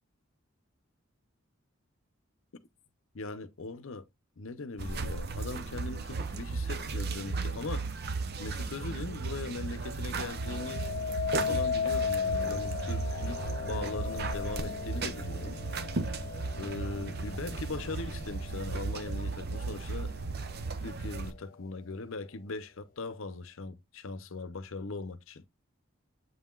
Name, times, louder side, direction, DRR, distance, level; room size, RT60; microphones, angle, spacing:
voice 1, 3.1-4.0 4.4-8.0 8.4-10.8 11.5-15.6 16.6-20.4 20.8-25.4, left 3 dB, 70° left, 0.7 m, -40 dB
sound 1, 4.8-21.3, right 4 dB, 45° right, 0.7 m, -35 dB
sound 2, 10.3-19.5 20.0-20.5, left 6 dB, 40° left, 0.3 m, -36 dB
7.9 x 5.6 x 2.4 m
head